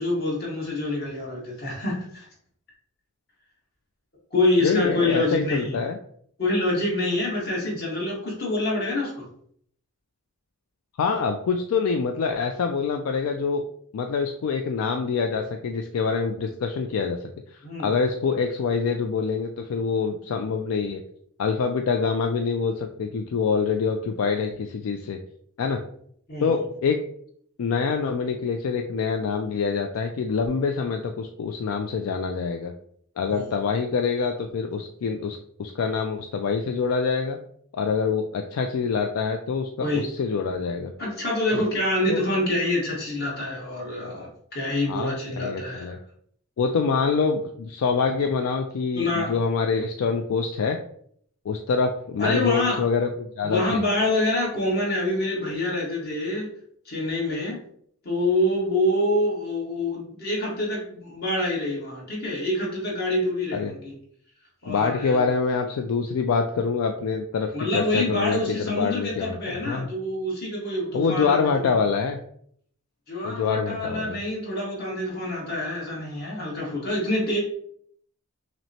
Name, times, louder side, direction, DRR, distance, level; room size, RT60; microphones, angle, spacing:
voice 1, 0.0-2.3 4.3-5.8 6.4-9.3 17.6-18.0 26.3-26.5 33.3-33.5 39.8-40.0 41.0-46.0 48.9-49.3 52.2-52.8 53.4-56.5 56.8-57.6 58.0-64.0 64.6-65.2 67.5-71.8 73.1-77.4, left 1 dB, 50° left, -4 dB, 1.4 m, -26 dB
voice 2, 4.6-6.0 11.0-13.6 13.9-17.3 17.8-21.0 21.4-25.2 25.6-25.8 26.4-27.0 27.6-32.7 33.2-37.4 37.7-40.9 41.5-41.6 42.1-42.2 44.9-46.0 46.6-50.8 51.5-53.8 63.5-63.7 64.7-69.9 70.9-72.2 73.2-74.2, left 5 dB, 75° left, 4 dB, 0.3 m, -25 dB
5.9 x 2.1 x 2.8 m, 0.64 s
head